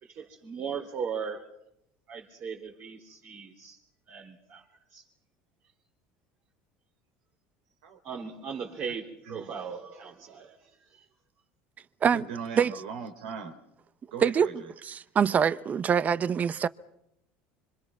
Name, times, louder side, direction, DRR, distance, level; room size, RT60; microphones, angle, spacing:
voice 1, 0.0-1.5 2.1-3.8 4.1-5.1 8.0-11.1, right 6 dB, 50° right, 3.7 m, -38 dB
voice 2, 12.1-13.5 14.1-14.7, right 6 dB, 90° right, 3.9 m, -39 dB
voice 3, 14.8-16.7, right 7 dB, 35° right, 0.9 m, -24 dB
26.0 x 26.0 x 6.0 m
supercardioid pair, 105°, 5 cm